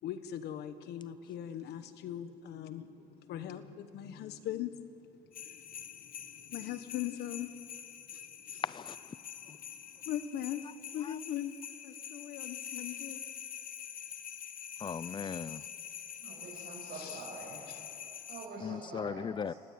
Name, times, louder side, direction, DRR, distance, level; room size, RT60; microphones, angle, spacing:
voice 1, 0.0-7.7 8.1-8.6 9.4-11.6 11.8-13.2 17.0-17.2 17.7-17.8, left 11 dB, 75° left, 11 dB, 1.4 m, -41 dB
sound 1, 5.3-18.5, left 8 dB, 55° left, 1.5 m, -45 dB
voice 2, 8.6-9.0 11.0-11.1 14.8-15.6 18.6-19.5, left 6 dB, 30° left, 20 dB, 0.5 m, -37 dB
voice 3, 16.2-17.7 18.3-19.6, right 3 dB, 65° right, -4 dB, 6.7 m, -46 dB
29.5 x 18.0 x 8.6 m, 2.9 s
cardioid pair, 110°, 17 cm